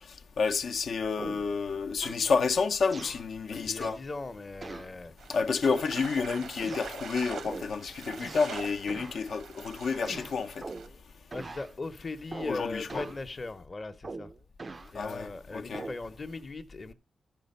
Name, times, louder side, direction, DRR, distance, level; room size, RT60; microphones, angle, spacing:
voice 1, 0.4-4.0 5.3-10.6 12.5-13.1 15.0-15.3 15.5-15.9, left 5 dB, 70° left, 0.6 m, -30 dB
sound 1, 1.2-1.5 2.0-2.3 2.9-3.3 3.8-4.1 4.6-4.9 5.6-6.2 6.6-7.0 7.4-7.8 8.2-8.6 8.9-9.2 10.0-11.0 11.3-11.7 12.3-12.6 12.9-13.2 14.0-14.9 15.7-16.0, right 3 dB, 35° right, 0.4 m, -42 dB
voice 2, 3.5-5.1 5.7-5.8 11.3-14.3 14.9-16.9, left 3 dB, 35° left, 0.8 m, -39 dB
sound 2, 5.2-10.9, right 6 dB, 90° right, 0.9 m, -44 dB
12.0 x 5.0 x 5.3 m
wide cardioid pair, 105°, 0 cm